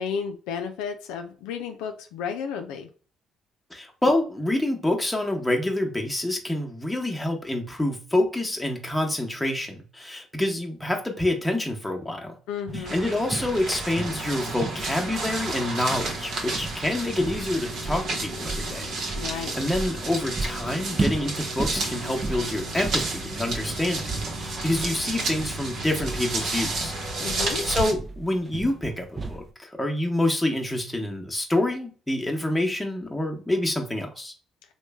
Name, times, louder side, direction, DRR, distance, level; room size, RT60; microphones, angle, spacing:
voice 1, 0.0-2.9 12.5-13.0 19.1-19.6 27.2-27.6, left 6 dB, 80° left, 5 dB, 0.4 m, -32 dB
voice 2, 3.7-12.4 12.7-18.9 19.3-26.9 27.6-34.3, left 1 dB, 10° left, 1 dB, 0.9 m, -27 dB
sound 1, 12.7-29.5, right 3 dB, 35° right, 0.5 m, -35 dB
sound 2, 12.9-27.9, right 2 dB, 65° right, 0.8 m, -31 dB
3.0 x 2.2 x 3.3 m, 0.37 s
hypercardioid pair, 60°, 0 cm